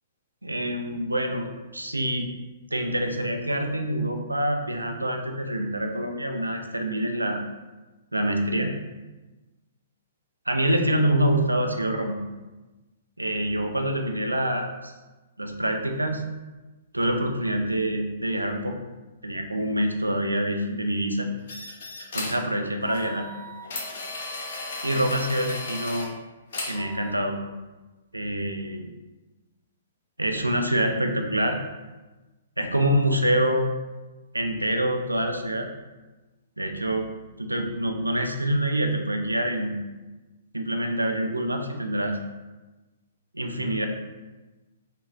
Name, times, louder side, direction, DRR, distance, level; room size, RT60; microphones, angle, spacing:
voice 1, 0.4-2.3 2.7-7.4 8.1-8.7 10.5-12.2 13.2-14.9 15.4-16.2 16.9-18.8 19.2-21.3 22.1-23.3 24.8-26.1 26.6-27.4 28.1-28.9 30.2-31.6 32.6-33.7 34.3-35.7 36.6-37.1 37.4-39.7 40.5-42.2 43.3-43.9, right 1 dB, 85° right, 4 dB, 0.4 m, -26 dB
sound 1, 21.5-22.5 22.8-26.1 26.5-27.1, left 2 dB, 50° left, 0.6 m, -35 dB
4.2 x 2.0 x 2.5 m, 1.2 s
figure-of-eight pair, 115°, 0 cm